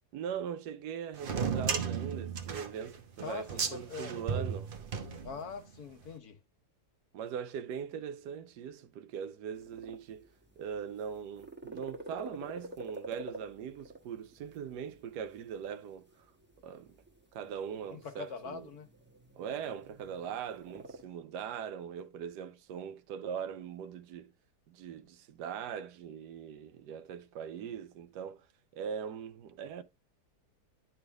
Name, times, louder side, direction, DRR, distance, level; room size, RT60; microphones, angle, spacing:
voice 1, 0.1-4.7 7.1-10.3 10.6-16.3 16.6-17.0 17.3-18.7 19.4-24.3 24.7-28.5 28.7-29.8, right 8 dB, 85° right, 1.2 m, -41 dB
sound 1, 1.2-5.7, right 6 dB, 50° right, 0.7 m, -35 dB
voice 2, 3.2-4.5 5.2-6.4 17.9-18.9, left 5 dB, 65° left, 1.4 m, -43 dB
sound 2, 9.5-21.0, right 1 dB, 10° right, 0.9 m, -50 dB
10.5 x 3.6 x 3.4 m
omnidirectional pair, 1.8 m